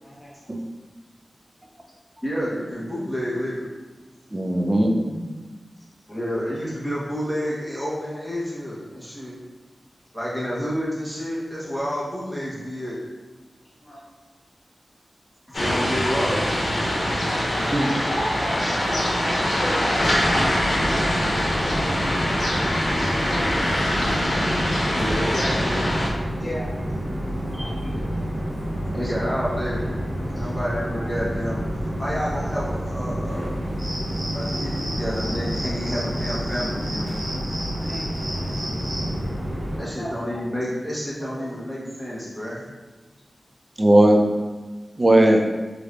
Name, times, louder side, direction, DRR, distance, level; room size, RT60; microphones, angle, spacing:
voice 1, 2.2-3.7 6.1-9.4 10.1-13.0 15.5-16.5 22.6-22.7 24.9-25.8 28.9-29.8 30.3-31.6 32.0-33.6 34.3-37.2 39.8-42.6, equal, ahead, -7 dB, 0.9 m, -29 dB
voice 2, 4.3-5.3 17.7-17.8 43.8-44.2 45.0-45.4, right 1 dB, 25° right, 1 dB, 0.4 m, -17 dB
sound 1, 15.5-26.1, equal, 75° left, 0.8 m, -23 dB
voice 3, 17.1-19.2 19.6-20.5 20.8-22.1 23.2-24.0 26.4-26.8 27.5-28.0 37.8-38.1 39.9-40.5 41.4-41.5, equal, 40° left, -5 dB, 0.5 m, -35 dB
sound 2, 20.0-39.8, equal, 55° right, 1.5 m, -29 dB
sound 3, 33.8-39.1, equal, 75° right, 1.4 m, -34 dB
3.2 x 3.1 x 2.5 m, 1.3 s
wide cardioid pair, 90°, 0 cm